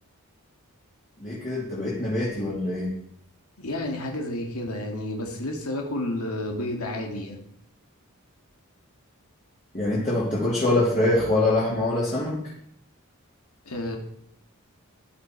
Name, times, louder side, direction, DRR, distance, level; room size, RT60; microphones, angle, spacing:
voice 1, 1.2-2.9 9.7-12.4, left 2 dB, 35° left, -7 dB, 3.2 m, -24 dB
voice 2, 3.6-7.5 13.6-14.0, left 1 dB, 90° left, 1 dB, 2.1 m, -31 dB
14.0 x 10.5 x 4.7 m, 0.70 s
head